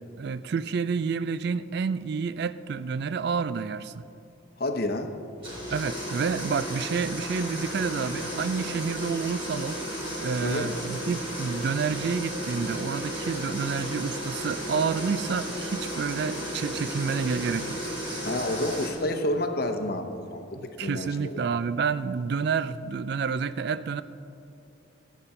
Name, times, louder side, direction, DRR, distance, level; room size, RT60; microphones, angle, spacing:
voice 1, 0.2-4.0 5.7-9.8 10.2-17.8 20.5-24.0, right 5 dB, 55° right, 15 dB, 0.3 m, -29 dB
voice 2, 4.6-5.1 10.4-10.7 18.2-21.4, left 1 dB, 50° left, 6 dB, 0.9 m, -29 dB
sound 1, 5.4-18.9, equal, 25° right, 3.0 m, -34 dB
15.0 x 8.4 x 4.4 m, 2.8 s
head